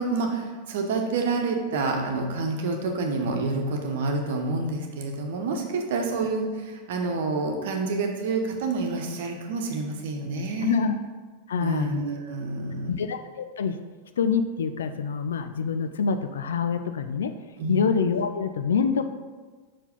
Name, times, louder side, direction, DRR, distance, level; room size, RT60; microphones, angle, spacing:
voice 1, 0.0-10.8 11.6-12.9 17.6-17.8, right 3 dB, 55° right, 3 dB, 1.0 m, -28 dB
voice 2, 10.6-11.0 11.5-12.0 12.9-13.8 14.2-17.3 17.7-19.0, left 6 dB, 65° left, 9 dB, 0.4 m, -26 dB
5.5 x 4.8 x 5.2 m, 1.4 s
figure-of-eight pair, 90°, 0 cm